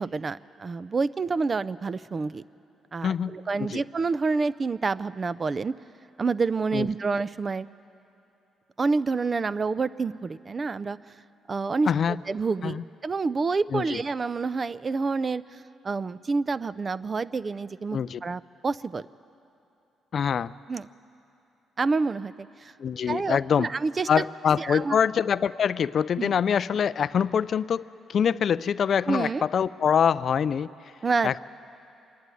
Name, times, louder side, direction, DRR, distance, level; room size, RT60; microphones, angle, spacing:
voice 1, 0.0-2.4 2.9-5.8 6.2-7.7 8.8-11.0 11.5-11.9 12.3-19.0 20.7-20.9 21.8-22.7 23.1-24.1 24.6-25.0 26.2-26.3 29.1-29.4 31.0-31.4, right 4 dB, 35° right, 17 dB, 0.4 m, -28 dB
voice 2, 3.0-3.8 6.7-6.9 11.9-12.2 12.6-12.8 13.7-14.0 17.9-18.2 20.1-20.5 22.8-23.7 24.1-30.9 31.2-31.4, left 7 dB, 55° left, 17 dB, 0.3 m, -25 dB
25.5 x 11.5 x 9.2 m, 2.8 s
cardioid pair, 90°, 0 cm